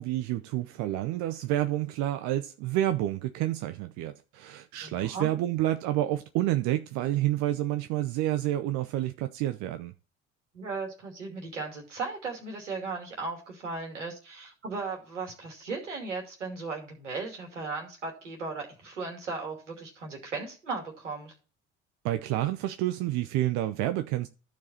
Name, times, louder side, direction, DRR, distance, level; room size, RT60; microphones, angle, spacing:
voice 1, 0.0-9.9 22.0-24.3, right 14 dB, 55° right, 0.8 m, -29 dB
voice 2, 4.8-5.3 10.5-21.3, right 4 dB, 80° right, 2.7 m, -36 dB
14.0 x 4.8 x 4.2 m
figure-of-eight pair, 55°, 36 cm